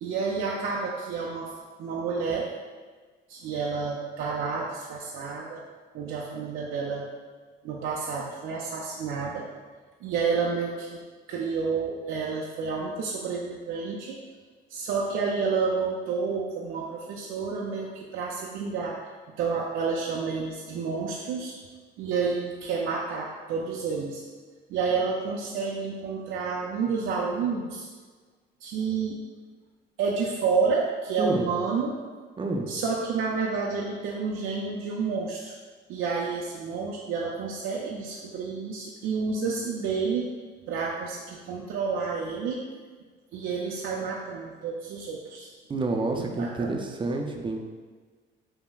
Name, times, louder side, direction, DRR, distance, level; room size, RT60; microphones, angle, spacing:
voice 1, 0.0-1.5 1.8-2.5 3.3-5.6 5.9-7.1 7.6-9.5 10.0-11.0 11.3-14.2 14.7-18.9 19.4-21.6 22.0-24.2 24.7-27.9 28.6-29.2 30.0-32.0 32.7-35.5 35.9-40.3 40.7-42.6 43.3-45.5 46.1-46.8, right 5 dB, 85° right, -3 dB, 0.4 m, -30 dB
voice 2, 31.2-31.5 32.4-32.7 45.7-47.6, right 2 dB, 25° right, 2 dB, 0.4 m, -29 dB
5.5 x 2.0 x 2.3 m, 1.4 s
cardioid pair, 90°, 20 cm